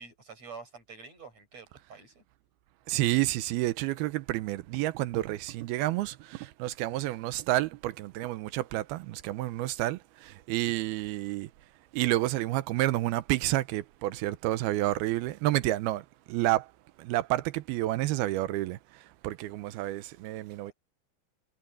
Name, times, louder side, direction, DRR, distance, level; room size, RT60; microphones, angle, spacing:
voice 1, 0.0-2.2 20.6-20.7, right 5 dB, 40° right, 8.2 m, -47 dB
voice 2, 2.9-11.5 11.9-16.7 17.0-18.8 19.2-20.7, right 16 dB, 90° right, 2.7 m, -30 dB
omnidirectional pair, 4.5 m